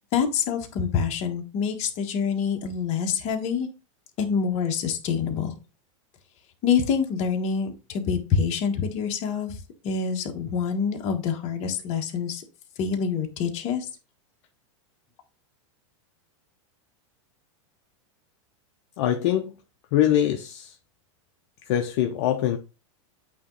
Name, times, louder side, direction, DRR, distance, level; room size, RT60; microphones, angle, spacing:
voice 1, 0.1-3.7 4.2-5.5 6.6-9.6 9.8-12.4 12.8-13.8, left 6 dB, 40° left, 1.4 m, -26 dB
voice 2, 19.0-19.5 19.9-20.7 21.7-22.6, left 11 dB, 60° left, 0.7 m, -23 dB
8.5 x 3.0 x 3.9 m
supercardioid pair, 130°, 17 cm